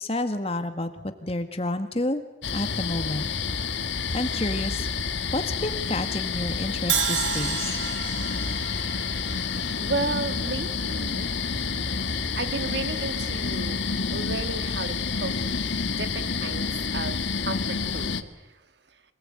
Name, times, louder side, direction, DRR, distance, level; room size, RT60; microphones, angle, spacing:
voice 1, 0.0-2.2 2.5-3.3 4.1-4.9 5.3-7.8, left 1 dB, 30° left, 8 dB, 1.9 m, -29 dB
sound 1, 2.4-18.2, left 5 dB, 80° left, 1.5 m, -29 dB
Crash cymbal, 6.9-10.9, right 8 dB, 90° right, 1.7 m, -31 dB
voice 2, 9.8-11.3 12.0-13.8 14.1-15.3 16.0-18.6, right 3 dB, 70° right, 10 dB, 1.6 m, -33 dB
25.5 x 19.5 x 9.1 m, 1.0 s
head